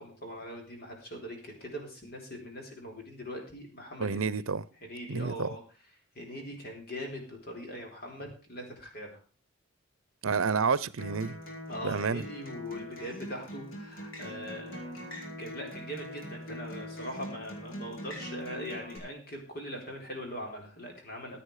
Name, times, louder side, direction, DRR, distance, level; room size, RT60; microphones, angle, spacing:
voice 1, 0.0-4.5 4.8-5.6 6.1-9.2 11.7-15.0 15.4-21.4, equal, 45° left, 4.1 m, -41 dB
voice 2, 4.0-4.6 5.1-5.5 10.2-11.4 11.8-12.2, right 5 dB, 80° right, 0.7 m, -29 dB
Acoustic guitar, 11.0-19.0, left 1 dB, 70° left, 4.7 m, -42 dB
15.0 x 9.0 x 4.9 m
head